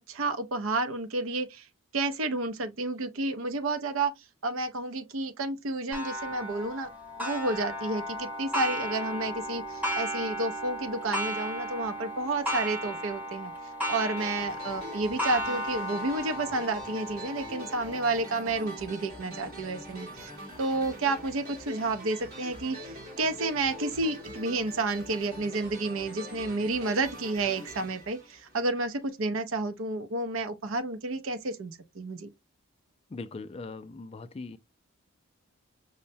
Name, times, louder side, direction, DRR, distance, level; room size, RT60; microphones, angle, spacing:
voice 1, 0.0-1.7 1.9-4.1 4.4-6.9 7.2-13.5 13.9-20.3 20.6-32.3, right 2 dB, 70° right, 0.6 m, -31 dB
Clock, 5.9-21.2 21.8-21.9 22.4-22.5 23.5-23.6, equal, 5° right, 0.9 m, -35 dB
sound 1, 14.2-29.0, equal, 45° right, 1.8 m, -44 dB
voice 2, 33.1-34.6, left 3 dB, 30° left, 0.3 m, -40 dB
5.3 x 2.1 x 2.6 m
head